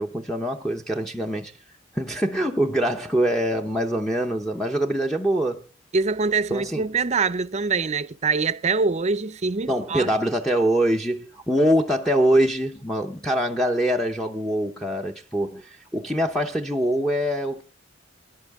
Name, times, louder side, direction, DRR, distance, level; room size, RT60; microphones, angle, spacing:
voice 1, 0.0-1.5 1.9-5.6 6.5-6.8 9.7-17.6, right 1 dB, ahead, 0.8 m, -24 dB
voice 2, 5.9-10.1, right 4 dB, 35° right, 0.6 m, -24 dB
22.5 x 11.0 x 3.5 m
head